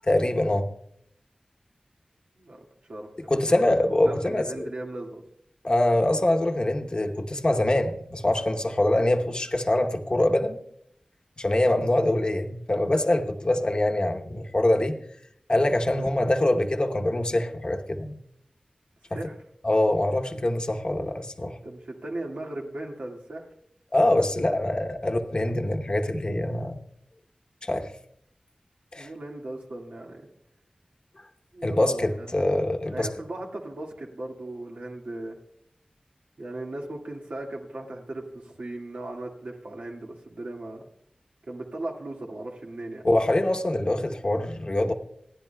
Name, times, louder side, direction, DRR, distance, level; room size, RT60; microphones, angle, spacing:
voice 1, 0.0-0.7 3.3-4.7 5.6-10.6 11.4-14.9 15.5-18.2 19.1-19.2 19.6-21.6 23.9-26.8 27.6-27.9 28.9-29.1 31.6-33.1 43.0-44.9, left 1 dB, 40° left, 4 dB, 1.0 m, -24 dB
voice 2, 2.9-3.7 4.1-5.2 16.0-16.1 19.1-19.4 21.6-23.5 29.0-30.3 31.5-32.4 32.9-35.4 36.4-40.8 41.5-43.0, right 2 dB, 85° right, 0 dB, 1.9 m, -37 dB
27.0 x 10.0 x 2.3 m, 0.71 s
wide cardioid pair, 60°, 2 cm